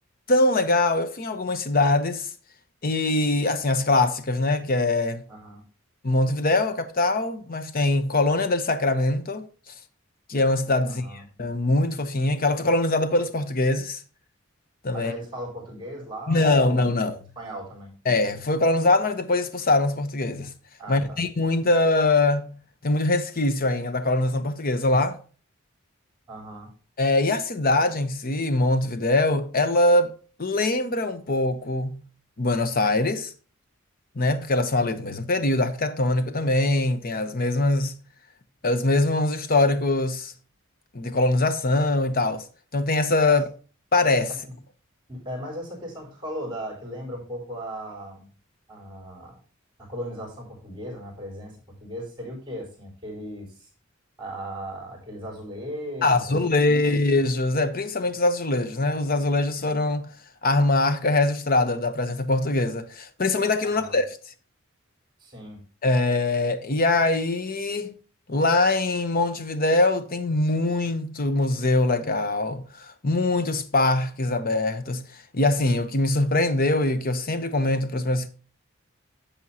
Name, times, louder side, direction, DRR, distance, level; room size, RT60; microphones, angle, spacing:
voice 1, 0.3-2.3 2.8-5.2 6.0-9.5 10.3-11.0 11.4-14.0 14.8-15.1 16.3-17.2 18.1-20.5 20.9-25.2 27.0-30.1 30.4-32.0 32.4-33.3 34.2-38.0 38.6-40.3 40.9-42.4 42.7-43.4 43.9-44.3 56.0-60.1 60.4-64.2 65.8-67.9 68.3-75.1 75.3-78.3, left 2 dB, 45° left, 0.9 m, -23 dB
voice 2, 5.3-5.6 10.8-11.2 14.9-17.0 17.4-17.9 20.8-21.2 26.3-26.7 43.3-43.4 44.3-44.4 45.1-48.3 48.7-49.4 49.8-53.7 54.2-57.0 63.6-64.0 65.2-65.6, equal, 25° right, 4.3 m, -37 dB
11.0 x 7.2 x 2.8 m
head